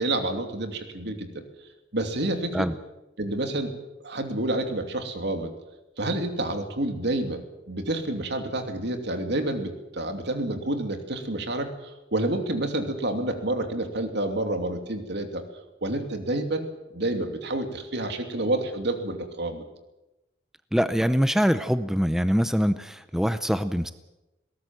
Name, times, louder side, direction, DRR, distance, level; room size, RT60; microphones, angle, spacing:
voice 1, 0.0-1.4 1.9-2.7 3.2-3.7 4.0-5.5 6.0-15.4 15.8-16.6 16.9-19.6, right 1 dB, 65° right, 6 dB, 2.9 m, -29 dB
voice 2, 20.7-23.9, equal, 5° right, 11 dB, 0.6 m, -24 dB
21.5 x 18.0 x 7.8 m, 1.0 s
head